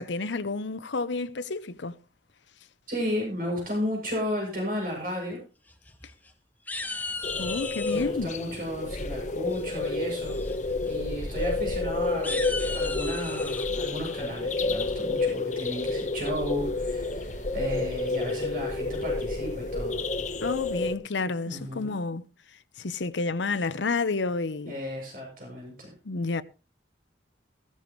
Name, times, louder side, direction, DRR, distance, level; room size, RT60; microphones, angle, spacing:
voice 1, 0.0-2.0 7.4-8.3 20.4-22.2 22.8-24.7 26.0-26.4, left 3 dB, 85° left, 0.8 m, -30 dB
voice 2, 2.9-5.4 7.9-12.4 12.7-20.0 21.5-21.9 24.7-25.9, equal, 50° right, 7.4 m, -34 dB
sound 1, 5.7-6.3 6.7-8.1 9.5-9.9 10.3-10.6 10.8-10.9 11.3-11.5 12.1-13.7, left 3 dB, 10° left, 1.1 m, -36 dB
sound 2, 7.2-21.0, left 3 dB, 40° left, 1.1 m, -30 dB
15.0 x 14.5 x 3.1 m
head